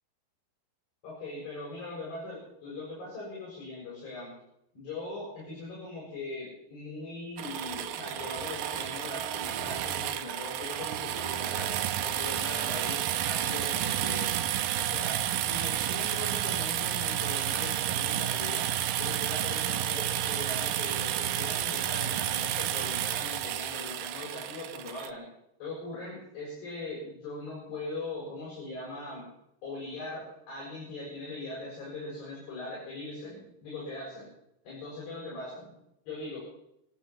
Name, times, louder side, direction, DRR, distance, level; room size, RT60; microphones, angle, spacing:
voice 1, 1.0-4.3 4.7-11.7 12.0-14.3 14.8-18.7 19.0-25.2 25.6-29.3 29.6-34.3 34.6-35.8 36.1-36.4, left 2 dB, 70° left, -6 dB, 8.8 m, -40 dB
sound 1, 7.4-25.1, right 11 dB, 80° right, 1.9 m, -31 dB
27.0 x 9.1 x 5.8 m, 0.81 s
omnidirectional pair, 5.0 m